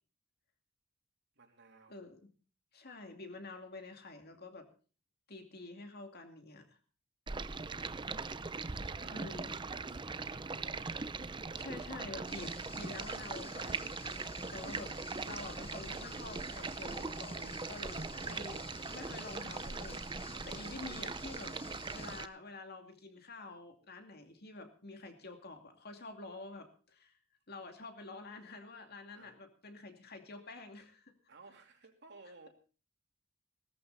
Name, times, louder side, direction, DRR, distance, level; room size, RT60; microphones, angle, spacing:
voice 1, 1.3-2.0 8.5-11.2 11.7-12.1 18.1-19.5 29.1-29.3 31.3-32.5, right 3 dB, 55° right, 3 dB, 3.2 m, -59 dB
voice 2, 1.9-2.2 2.7-4.7 5.3-6.8 9.1-9.5 11.6-14.2 14.5-15.0 15.2-18.6 18.9-21.6 21.9-27.2 27.5-31.1, left 3 dB, 50° left, 5 dB, 2.5 m, -48 dB
Stream, 7.3-22.3, right 4 dB, 25° right, 0.6 m, -41 dB
sound 1, 12.3-22.3, left 6 dB, 25° left, 1.1 m, -53 dB
17.5 x 14.0 x 4.1 m, 0.39 s
head